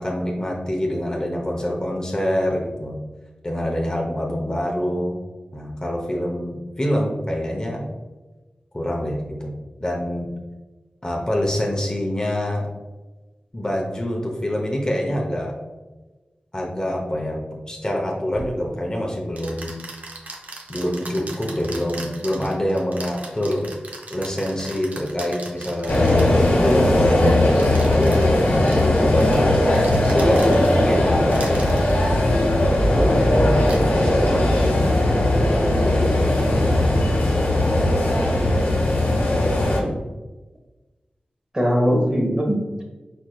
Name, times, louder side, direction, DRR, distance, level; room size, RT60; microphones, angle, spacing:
voice 1, 0.0-3.0 3.4-5.2 5.5-7.8 8.7-9.5 9.8-10.3 11.0-12.7 13.5-15.5 16.5-19.7 20.7-23.7 24.1-28.2 28.7-31.7 32.5-35.0, equal, 25° left, -1 dB, 0.8 m, -26 dB
sound 1, 18.3-18.5 19.4-26.5 27.5-30.9 31.3-32.0 33.0-33.2 33.6-33.9, right 2 dB, 60° right, 0.8 m, -38 dB
sound 2, 25.9-39.8, left 1 dB, 90° left, 1.0 m, -18 dB
voice 2, 39.5-39.9 41.5-42.8, equal, 20° right, -1 dB, 1.2 m, -22 dB
4.6 x 4.3 x 2.3 m, 1.2 s
cardioid pair, 55°, 3 cm